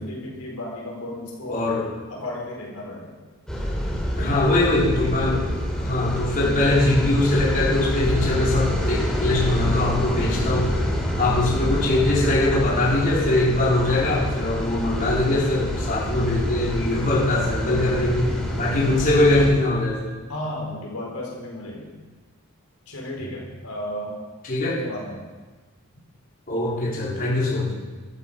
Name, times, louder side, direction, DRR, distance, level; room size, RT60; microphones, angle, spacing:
voice 1, 0.0-1.7 2.1-3.1 4.2-4.7 11.0-11.2 20.3-21.9 22.9-24.2 24.8-25.2, left 1 dB, 85° left, -3 dB, 4.4 m, -34 dB
voice 2, 1.5-1.9 4.2-5.5 5.8-10.8 11.2-20.1 24.4-24.8 26.5-27.7, left 2 dB, 40° left, -7 dB, 4.1 m, -22 dB
sound 1, 3.5-19.5, equal, 5° left, 3.0 m, -27 dB
14.5 x 12.5 x 5.4 m, 1.3 s
head